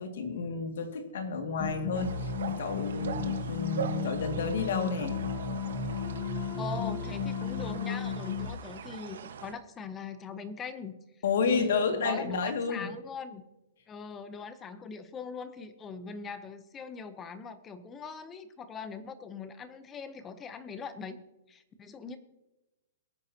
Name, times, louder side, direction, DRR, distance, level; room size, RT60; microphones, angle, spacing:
voice 1, 0.0-2.1 2.5-5.1 11.2-12.9, left 4 dB, 60° left, 5 dB, 2.0 m, -31 dB
sound 1, 1.6-8.4, left 6 dB, 35° left, 1.4 m, -34 dB
sound 2, 1.9-9.5, right 8 dB, 65° right, 1.2 m, -42 dB
voice 2, 6.6-11.0 11.5-13.4 13.9-22.2, left 5 dB, 10° left, 11 dB, 0.7 m, -41 dB
22.0 x 9.2 x 2.8 m, 1.0 s
hypercardioid pair, 175°, 0 cm